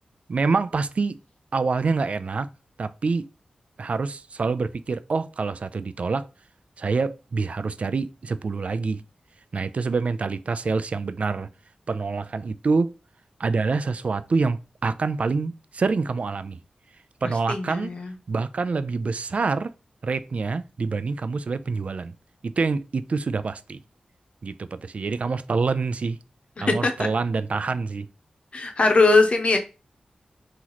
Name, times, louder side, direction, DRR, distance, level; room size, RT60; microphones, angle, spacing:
voice 1, 0.3-1.2 1.5-2.5 2.8-3.3 3.8-6.3 6.8-9.0 9.5-11.5 11.9-12.9 13.4-16.6 17.2-17.9 18.3-19.7 20.0-22.1 22.4-23.8 24.4-26.2 26.6-28.1, right 4 dB, 60° right, 0.3 m, -26 dB
voice 2, 17.5-18.1 26.6-26.9 28.5-29.6, left 3 dB, 50° left, 0.8 m, -20 dB
3.0 x 3.0 x 3.9 m
wide cardioid pair, 90°, 3 cm